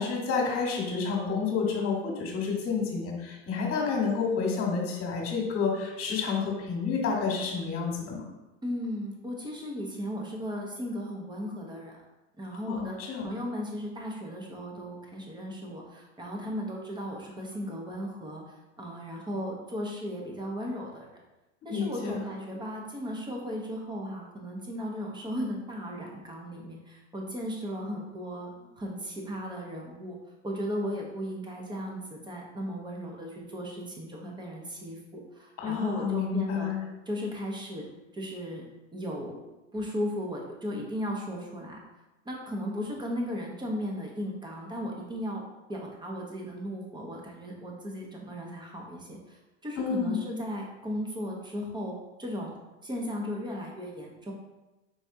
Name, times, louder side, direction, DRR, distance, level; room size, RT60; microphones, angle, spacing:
voice 1, 0.0-8.2 12.7-13.3 21.7-22.2 35.6-36.8 49.8-50.2, left 5 dB, 40° left, -1 dB, 1.4 m, -29 dB
voice 2, 8.6-12.0 12.4-21.1 21.6-28.5 28.8-30.2 30.4-36.7 37.1-37.9 38.1-38.6 38.9-39.4 39.7-41.8 42.2-45.4 45.7-52.6 52.8-54.3, equal, 10° right, -1 dB, 0.8 m, -36 dB
4.7 x 3.2 x 2.7 m, 1.0 s
supercardioid pair, 110°, 36 cm